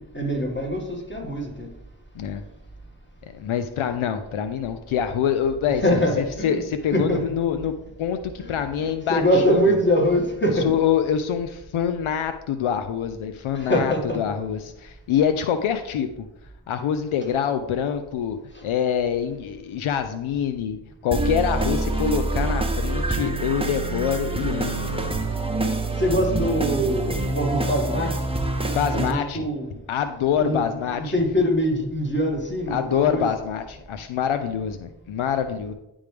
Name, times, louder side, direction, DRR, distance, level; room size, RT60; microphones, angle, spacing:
voice 1, 0.0-1.7 5.7-6.6 6.9-7.2 8.4-10.7 13.5-14.2 18.5-18.6 26.0-28.2 28.9-29.8 30.4-30.6 30.9-33.3, equal, 20° left, 0 dB, 2.0 m, -23 dB
voice 2, 3.2-5.8 6.4-9.8 10.6-16.1 16.7-25.1 28.7-29.5 29.9-31.1 32.7-35.7, left 8 dB, 75° left, 9 dB, 0.6 m, -25 dB
sound 1, 21.1-29.1, right 2 dB, 10° right, 0.9 m, -26 dB
10.0 x 3.6 x 3.3 m, 0.94 s
cardioid pair, 40°, 49 cm